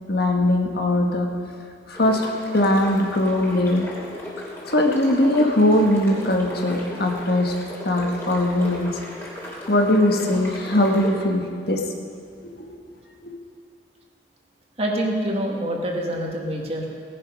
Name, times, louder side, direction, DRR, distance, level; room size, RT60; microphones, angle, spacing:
voice 1, 0.1-1.3 1.9-2.3 2.5-3.9 4.7-7.6 7.8-9.0 9.7-11.9 12.4-12.7 13.2-13.4, left 1 dB, 60° left, 2 dB, 1.5 m, -20 dB
sound 1, 1.9-11.1, left 1 dB, 15° left, 2.9 m, -36 dB
voice 2, 14.8-16.9, right 1 dB, 35° right, -1 dB, 2.1 m, -26 dB
17.5 x 11.0 x 5.3 m, 2.2 s
head